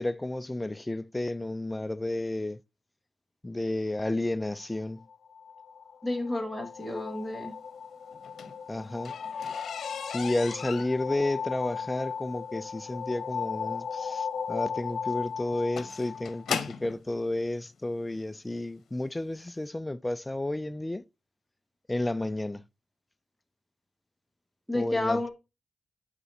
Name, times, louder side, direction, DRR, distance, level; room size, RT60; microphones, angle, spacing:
voice 1, 0.0-2.6 3.4-5.1 8.7-9.2 10.1-21.0 21.9-22.6 24.7-25.3, left 1 dB, 15° left, 0.4 m, -31 dB
sound 1, 5.0-16.7, left 6 dB, 50° left, 1.0 m, -37 dB
voice 2, 6.0-7.5 24.7-25.3, left 2 dB, 5° right, 1.7 m, -31 dB
sound 2, 8.1-17.0 17.9-18.0 18.5-18.8 19.0-19.1 19.5-19.6, left 7 dB, 75° left, 0.9 m, -39 dB
9.6 x 5.2 x 2.7 m
cardioid pair, 100°, 0 cm